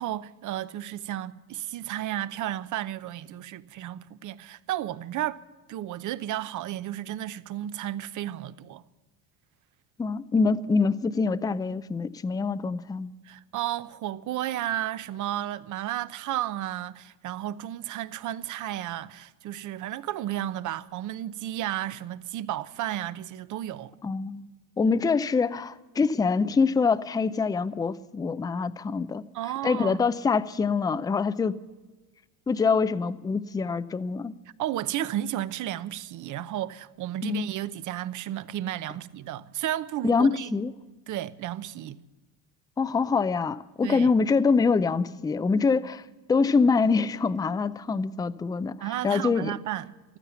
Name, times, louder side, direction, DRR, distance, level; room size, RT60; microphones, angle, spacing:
voice 1, 0.0-5.4 5.7-8.8 13.2-23.9 29.3-30.1 34.6-40.6 41.1-42.0 43.8-44.1 48.8-50.2, right 12 dB, 45° right, 0.8 m, -33 dB
voice 2, 10.0-13.1 24.0-24.5 24.8-29.2 29.6-31.5 32.5-34.3 37.2-37.5 40.0-40.7 42.8-46.0 46.3-49.5, left 4 dB, 10° left, 0.5 m, -25 dB
15.0 x 13.0 x 7.0 m
supercardioid pair, 100°, 41 cm